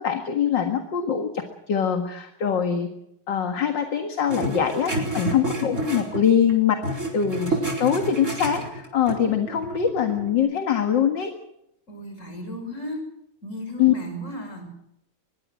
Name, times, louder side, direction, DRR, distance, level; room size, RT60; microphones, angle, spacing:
voice 1, 0.0-2.9 3.3-11.3 13.8-13.9, left 8 dB, 60° left, 6 dB, 2.4 m, -23 dB
sound 1, 4.3-6.5 6.8-10.3, right 2 dB, 35° right, 4.9 m, -29 dB
voice 2, 11.9-13.1 13.4-14.7, equal, 35° left, 5 dB, 6.6 m, -35 dB
23.5 x 22.0 x 6.3 m, 0.79 s
omnidirectional pair, 2.3 m